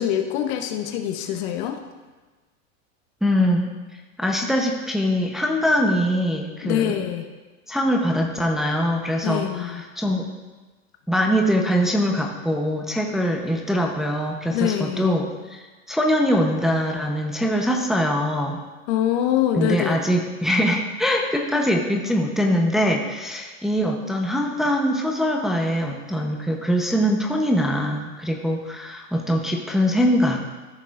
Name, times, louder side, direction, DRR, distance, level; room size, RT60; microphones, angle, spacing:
voice 1, 0.0-1.8 6.6-7.2 9.2-9.8 14.5-15.1 18.9-20.0, left 10 dB, 55° left, 6 dB, 1.0 m, -24 dB
voice 2, 3.2-3.7 4.2-7.0 7.7-10.3 11.1-18.6 19.5-30.4, equal, ahead, 0 dB, 0.8 m, -23 dB
14.0 x 6.7 x 2.5 m, 1.3 s
hypercardioid pair, 120°, 40 cm